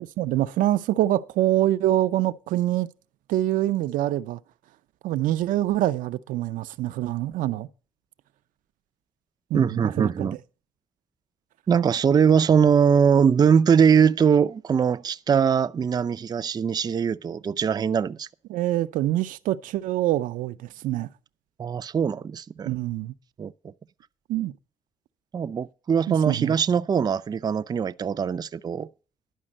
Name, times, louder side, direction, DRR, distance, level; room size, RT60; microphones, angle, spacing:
voice 1, 0.0-2.9 3.3-4.4 5.0-7.7 9.5-10.3 18.5-21.1 22.7-23.1 24.3-24.5 26.1-26.5, right 14 dB, 85° right, 0.6 m, -25 dB
voice 2, 9.5-10.3 11.7-18.3 21.6-22.7 23.4-23.5 25.3-28.9, right 7 dB, 30° right, 0.4 m, -21 dB
11.0 x 5.2 x 7.5 m
cardioid pair, 95°, 13 cm